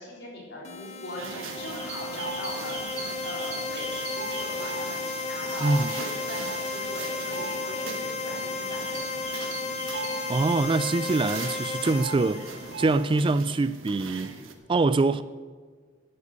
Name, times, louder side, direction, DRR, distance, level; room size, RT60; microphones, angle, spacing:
voice 1, 0.0-8.8, left 1 dB, 60° left, 3.8 m, -40 dB
sound 1, 0.6-13.4, left 3 dB, 35° left, 1.0 m, -34 dB
sound 2, 1.2-14.5, right 4 dB, 85° right, 1.3 m, -39 dB
sound 3, 1.6-5.6 6.0-6.2 7.2-7.3 7.8-8.1 8.4-10.5, right 2 dB, 65° right, 4.2 m, -40 dB
voice 2, 10.3-14.3 14.7-15.2, right 3 dB, 25° right, 0.3 m, -24 dB
12.0 x 10.0 x 6.7 m
head